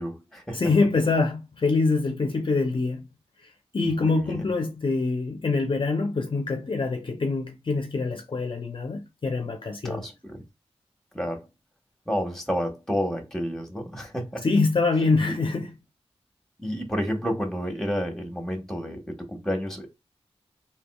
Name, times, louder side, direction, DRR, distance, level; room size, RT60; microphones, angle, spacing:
voice 1, 0.0-0.6 3.8-4.4 9.8-10.4 11.1-11.5 12.1-14.4 15.3-15.4 16.6-19.9, equal, 5° left, 1.3 m, -30 dB
voice 2, 0.5-3.0 3.7-10.0 14.4-15.7, left 3 dB, 45° left, 0.6 m, -25 dB
3.5 x 2.8 x 2.3 m
cardioid pair, 40°, 11 cm